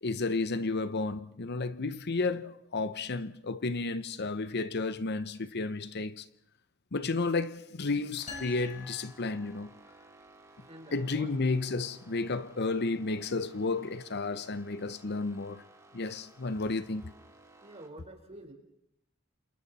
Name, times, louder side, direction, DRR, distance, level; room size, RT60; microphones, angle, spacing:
voice 1, 0.0-6.3 6.9-9.7 10.9-15.6 15.9-17.1, left 3 dB, 50° left, 0.8 m, -32 dB
sound 1, 8.2-17.9, right 2 dB, 15° right, 2.4 m, -57 dB
sound 2, 8.3-10.0, left 4 dB, 35° left, 4.5 m, -46 dB
voice 2, 10.7-11.3 11.6-11.7 17.6-18.5, right 1 dB, 30° right, 4.3 m, -48 dB
29.0 x 27.5 x 4.2 m
head